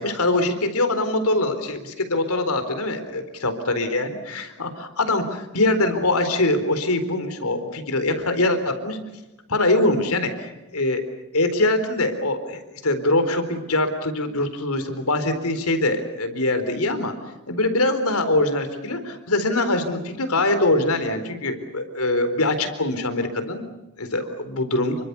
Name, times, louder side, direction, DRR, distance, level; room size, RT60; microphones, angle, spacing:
voice 1, 0.0-9.0 9.5-11.0 11.3-17.1 17.5-23.6 24.0-25.0, left 2 dB, 80° left, 9 dB, 4.1 m, -23 dB
28.5 x 24.5 x 7.0 m, 1.0 s
head